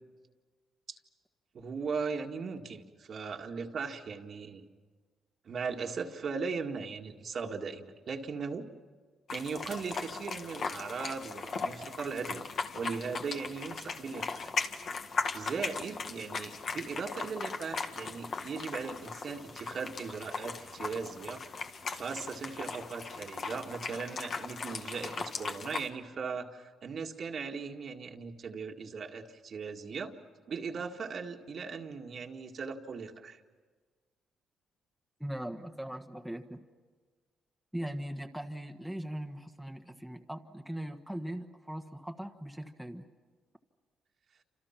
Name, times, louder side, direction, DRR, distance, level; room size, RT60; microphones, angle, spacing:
voice 1, 1.5-4.7 5.5-8.7 9.3-12.5 12.7-14.5 15.3-21.5 21.9-30.1 30.5-33.4, right 5 dB, 55° right, 3 dB, 2.0 m, -38 dB
sound 1, 9.3-25.9, left 4 dB, 55° left, 1.9 m, -38 dB
voice 2, 35.2-36.6 37.7-43.1, right 1 dB, ahead, 3 dB, 1.5 m, -40 dB
29.0 x 27.0 x 5.9 m, 1.4 s
cardioid pair, 90°, 0 cm